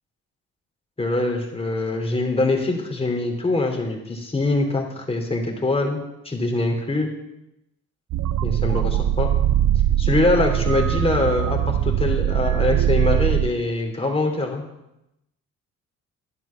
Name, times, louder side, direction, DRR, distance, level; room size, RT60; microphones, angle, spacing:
voice 1, 1.0-6.0 6.2-7.1 8.4-9.3 10.0-14.6, left 2 dB, 20° left, 1 dB, 3.3 m, -23 dB
sound 1, 8.1-13.5, right 11 dB, 70° right, 0.6 m, -21 dB
11.5 x 11.0 x 5.9 m, 0.89 s
cardioid pair, 90°, 30 cm